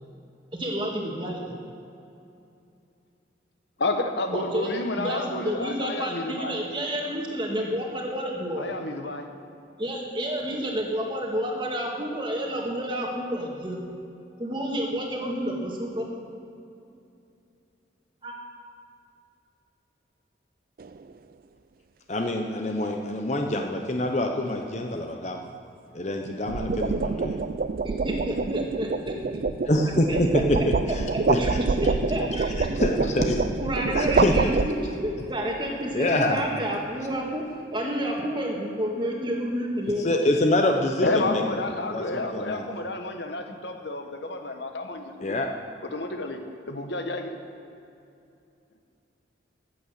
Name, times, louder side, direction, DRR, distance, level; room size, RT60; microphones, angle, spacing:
voice 1, 0.5-1.5 4.3-8.7 9.8-13.8 14.4-16.1 18.2-18.3 27.8-29.4 30.1-30.4 31.4-31.5 31.8-32.7 33.0-33.1 33.6-37.4 37.7-40.1, equal, 25° right, -1 dB, 1.8 m, -30 dB
voice 2, 3.8-6.6 8.6-9.3 41.0-45.5 45.9-47.4, left 2 dB, 70° left, 5 dB, 1.2 m, -30 dB
sound 1, 20.8-21.1 26.2-35.1, right 4 dB, 50° right, 0.4 m, -27 dB
voice 3, 22.1-25.4 25.9-27.3 29.6-31.4 32.8-33.4 33.9-34.5 35.9-36.4 40.0-41.6 41.9-42.6 45.2-45.5, left 1 dB, 35° left, 3 dB, 0.8 m, -25 dB
15.0 x 8.5 x 6.6 m, 2.6 s
head